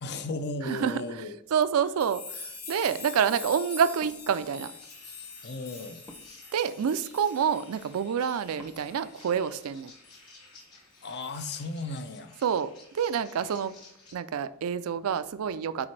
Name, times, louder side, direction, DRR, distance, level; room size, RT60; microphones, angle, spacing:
voice 1, 0.0-1.3 5.4-6.0 11.0-12.4, left 2 dB, 50° left, 0.6 m, -35 dB
voice 2, 0.6-1.2 1.5-4.7 6.5-9.9 12.4-12.7 12.9-13.7 14.1-15.9, right 7 dB, 65° right, 0.4 m, -28 dB
sound 1, 1.9-9.7 10.0-10.2 11.0-11.6, left 4 dB, 85° left, 2.0 m, -45 dB
Wood, 3.9-10.0, left 1 dB, 10° left, 0.7 m, -57 dB
sound 2, 4.3-14.1, left 2 dB, 70° left, 2.3 m, -54 dB
9.8 x 4.3 x 3.2 m
head